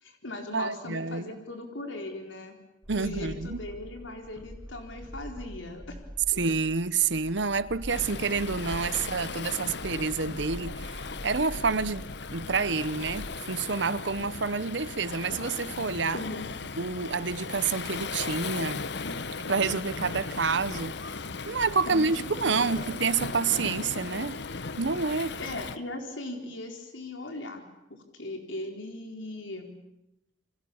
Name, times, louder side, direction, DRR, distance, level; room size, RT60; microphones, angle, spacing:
voice 1, 0.0-2.6 2.9-6.0 6.3-6.4 16.1-16.5 21.9-22.1 22.4-22.9 25.4-27.6 27.9-29.7, left 2 dB, 85° left, 4.3 m, -38 dB
voice 2, 0.5-1.3 2.9-3.6 6.4-16.2 16.8-18.8 19.5-21.0 21.5-24.4 24.8-25.4, right 4 dB, 65° right, 0.9 m, -28 dB
sound 1, 2.8-13.4, equal, 10° right, 1.0 m, -44 dB
Waves surf, 7.9-25.8, left 4 dB, 60° left, 1.0 m, -37 dB
29.5 x 25.5 x 7.3 m
head